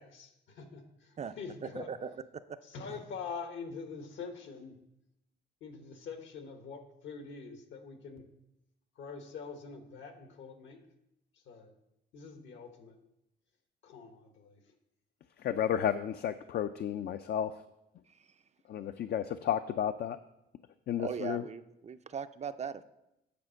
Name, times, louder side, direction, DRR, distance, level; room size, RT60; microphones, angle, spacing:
voice 1, 0.0-1.9 2.6-4.8 5.6-8.2 9.0-10.8 11.5-11.7 12.1-13.0 13.8-14.6, left 5 dB, 75° left, 6 dB, 1.3 m, -45 dB
voice 2, 1.7-2.2 21.0-22.8, right 6 dB, 35° right, 11 dB, 0.4 m, -39 dB
voice 3, 15.4-17.6 18.7-20.2 20.9-21.4, left 9 dB, 55° left, 10 dB, 0.4 m, -32 dB
8.4 x 4.3 x 6.4 m, 0.86 s
cardioid pair, 90°, 20 cm